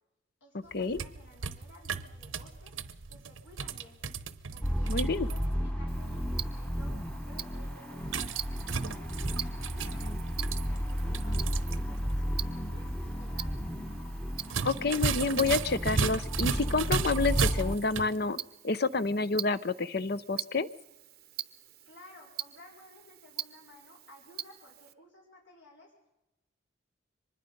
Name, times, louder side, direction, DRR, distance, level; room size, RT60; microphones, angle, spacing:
voice 1, 0.4-2.8 3.1-4.0 4.5-5.0 5.3-8.3 8.7-13.6 21.9-25.9, left 1 dB, 70° left, -2 dB, 4.6 m, -55 dB
sound 1, 0.7-5.5 8.0-11.8 12.1-12.2 14.4-18.2, right 5 dB, 90° right, 1.0 m, -35 dB
sound 2, 4.6-17.8, equal, 5° left, 1.0 m, -33 dB
voice 2, 4.9-5.3 14.6-18.4 18.6-20.7, left 3 dB, 50° left, 15 dB, 0.8 m, -29 dB
Tick-tock, 5.9-24.9, right 12 dB, 50° right, 0.7 m, -44 dB
24.0 x 20.5 x 5.4 m, 0.94 s
head